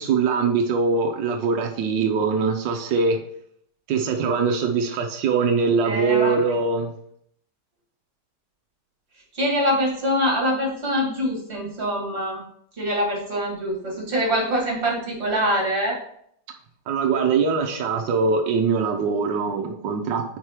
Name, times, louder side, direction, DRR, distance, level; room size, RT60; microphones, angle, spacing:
voice 1, 0.0-3.2 3.9-6.9 16.9-20.2, right 5 dB, 90° right, 3 dB, 1.4 m, -22 dB
voice 2, 5.8-6.5 9.3-12.4 12.8-16.0, equal, 35° right, -2 dB, 2.3 m, -24 dB
4.8 x 4.8 x 4.4 m, 0.67 s
omnidirectional pair, 1.9 m